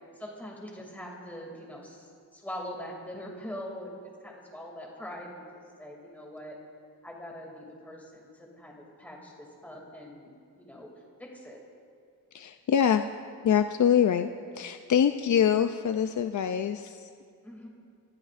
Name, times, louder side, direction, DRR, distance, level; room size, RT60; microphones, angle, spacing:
voice 1, 0.1-5.4 5.8-6.5 7.0-10.9 11.2-11.6 17.4-17.7, equal, 5° left, -2 dB, 2.5 m, -42 dB
voice 2, 12.3-13.1 13.4-14.3 14.5-17.1, left 8 dB, 50° left, 8 dB, 0.5 m, -24 dB
29.0 x 14.0 x 2.5 m, 2.3 s
wide cardioid pair, 120°, 38 cm